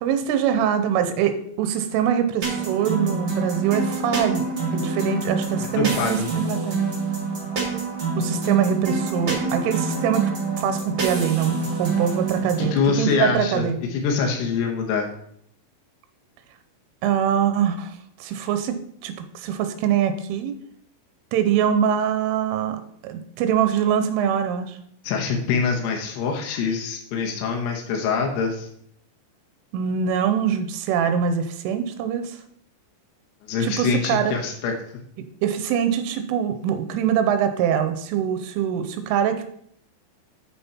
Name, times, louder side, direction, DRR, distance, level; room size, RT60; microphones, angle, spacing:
voice 1, 0.0-4.4 4.7-6.8 8.2-10.3 10.6-13.8 17.0-20.6 21.3-24.8 29.7-32.4 33.6-34.3 35.2-39.4, right 8 dB, 90° right, 8 dB, 3.2 m, -23 dB
sound 1, 2.4-12.7, right 4 dB, 40° right, 1.5 m, -26 dB
voice 2, 5.6-6.3 12.6-15.1 25.0-28.7 33.5-34.7, left 5 dB, 70° left, 1 dB, 2.8 m, -24 dB
8.4 x 6.9 x 4.3 m, 0.68 s
omnidirectional pair, 5.6 m